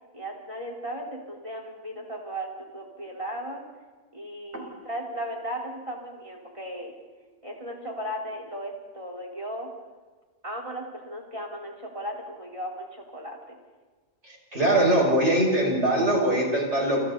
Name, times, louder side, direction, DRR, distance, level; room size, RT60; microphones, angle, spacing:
voice 1, 0.1-3.6 4.1-6.9 7.4-9.7 10.4-13.6, equal, 25° right, 0 dB, 4.5 m, -36 dB
voice 2, 14.5-17.1, right 1 dB, 60° right, -1 dB, 6.9 m, -22 dB
29.5 x 29.0 x 4.2 m, 1.4 s
omnidirectional pair, 1.4 m